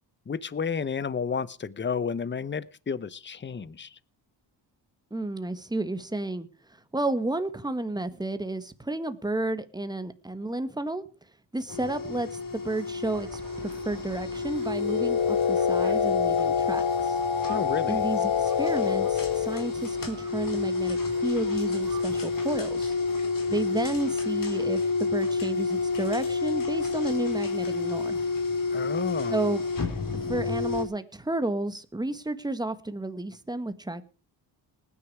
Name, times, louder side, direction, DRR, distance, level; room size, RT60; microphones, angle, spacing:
voice 1, 0.3-4.0 17.5-18.0 28.7-29.5, left 6 dB, 25° left, 0.8 m, -31 dB
voice 2, 5.1-6.5 6.9-11.0 11.5-17.2 17.9-22.9 23.5-28.2 29.3-29.6 30.1-34.0, right 2 dB, 10° right, 1.5 m, -32 dB
sound 1, 11.7-30.8, left 4 dB, 50° left, 3.8 m, -29 dB
sound 2, 13.0-23.0, right 5 dB, 50° right, 3.5 m, -45 dB
sound 3, 14.8-19.7, left 9 dB, 75° left, 1.8 m, -27 dB
19.0 x 9.9 x 4.8 m
cardioid pair, 90°, 43 cm